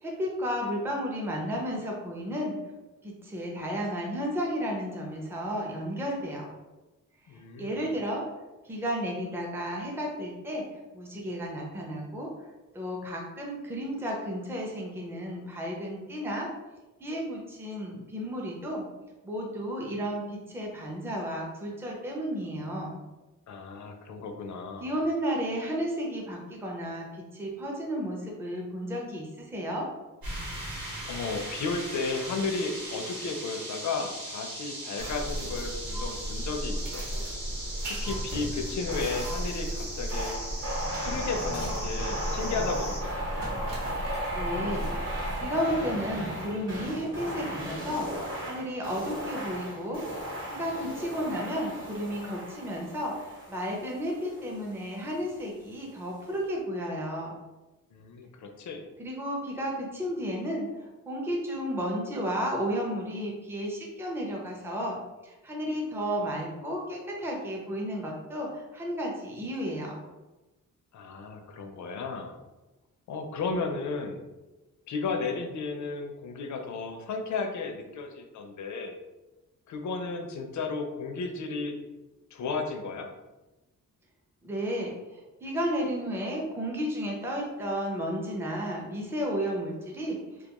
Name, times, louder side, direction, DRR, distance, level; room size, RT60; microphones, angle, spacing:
voice 1, 0.0-2.6 3.0-6.5 7.3-8.3 8.6-12.3 12.7-16.5 17.0-18.8 19.2-23.0 24.8-29.9 44.3-44.9 45.4-50.0 50.5-57.3 59.0-70.0 84.4-90.2, equal, 5° right, -2 dB, 0.4 m, -33 dB
voice 2, 7.3-7.9 23.5-24.9 31.1-37.0 37.9-40.4 41.0-43.1 57.9-58.8 70.9-72.4 73.1-74.2 74.9-78.9 79.7-81.7 82.3-83.1, left 4 dB, 55° left, 4 dB, 0.4 m, -34 dB
sound 1, 30.2-43.0, right 1 dB, 85° right, 1.1 m, -39 dB
sound 2, 35.0-45.5, right 1 dB, 65° right, 0.9 m, -35 dB
sound 3, 38.9-39.5 40.1-54.8, equal, 35° right, 0.8 m, -36 dB
2.3 x 2.2 x 2.8 m, 1.1 s
wide cardioid pair, 125°, 35 cm